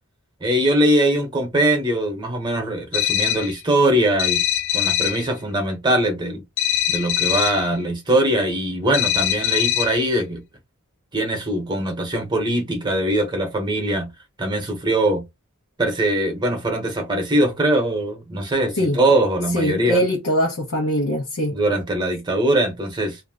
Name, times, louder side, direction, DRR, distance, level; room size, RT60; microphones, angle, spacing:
voice 1, 0.4-4.4 4.7-6.4 6.9-10.4 11.1-14.1 14.4-15.2 15.8-20.0 21.5-23.2, right 1 dB, 20° right, 0.9 m, -21 dB
sound 1, 2.9-3.6 4.2-5.3 6.6-7.7 8.9-10.1, left 11 dB, 55° left, 0.6 m, -22 dB
voice 2, 19.5-21.6, equal, 85° left, 0.9 m, -22 dB
2.6 x 2.1 x 3.6 m
head